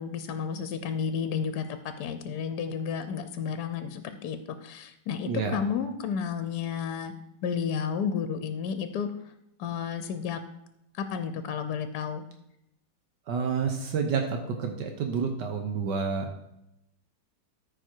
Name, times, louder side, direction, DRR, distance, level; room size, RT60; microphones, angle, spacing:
voice 1, 0.0-7.1 7.4-9.1 9.6-10.4 10.9-12.2, left 7 dB, 70° left, 11 dB, 1.1 m, -32 dB
voice 2, 5.3-5.6 13.3-16.3, right 5 dB, 75° right, 4 dB, 1.5 m, -29 dB
13.5 x 4.9 x 4.5 m, 0.83 s
omnidirectional pair, 1.9 m